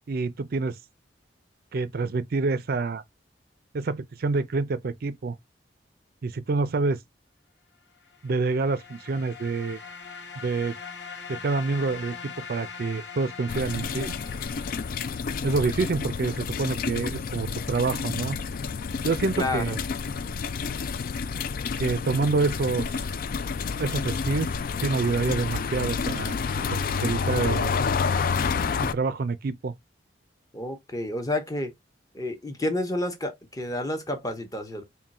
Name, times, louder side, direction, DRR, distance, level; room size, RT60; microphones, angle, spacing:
voice 1, 0.1-0.8 1.7-3.0 3.7-5.4 6.2-7.0 8.2-9.8 10.4-10.8 11.3-14.2 15.4-18.4 19.0-19.8 21.8-22.9 23.8-24.5 24.8-26.4 27.0-27.8 28.9-29.7, right 4 dB, 55° right, 0.4 m, -27 dB
sound 1, 8.0-15.8, left 6 dB, 70° left, 1.0 m, -42 dB
sound 2, 13.5-28.9, left 5 dB, 50° left, 0.4 m, -29 dB
voice 2, 19.4-19.8 30.5-31.7 32.1-34.8, left 1 dB, 20° left, 0.9 m, -30 dB
3.7 x 2.3 x 4.1 m
head